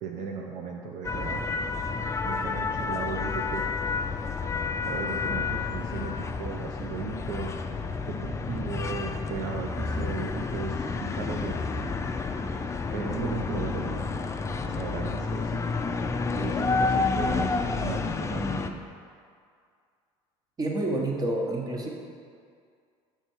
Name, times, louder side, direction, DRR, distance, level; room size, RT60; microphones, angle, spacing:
voice 1, 0.0-1.5 2.2-3.7 4.8-7.5 7.8-11.6 12.9-14.0 14.6-15.6 16.3-18.8, right 5 dB, 60° right, 1 dB, 0.6 m, -36 dB
sound 1, 1.0-18.7, left 4 dB, 20° left, 0.4 m, -30 dB
voice 2, 20.6-21.9, right 1 dB, 25° right, 0 dB, 1.2 m, -28 dB
6.8 x 4.2 x 4.6 m, 2.2 s
supercardioid pair, 90°, 14 cm